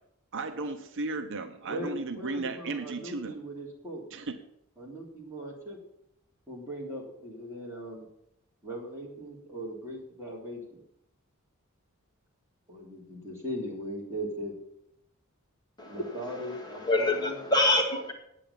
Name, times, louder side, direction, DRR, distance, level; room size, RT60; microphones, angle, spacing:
voice 1, 0.3-3.4 4.1-4.4, right 3 dB, 60° right, 7 dB, 0.8 m, -35 dB
voice 2, 1.7-4.0 4.8-5.8 6.5-8.1 8.6-10.8 12.7-14.5 15.9-17.4, equal, 15° right, -4 dB, 3.3 m, -39 dB
voice 3, 15.8-16.1 16.8-18.1, left 2 dB, 20° left, 0 dB, 1.9 m, -25 dB
9.1 x 8.5 x 7.3 m, 0.78 s
head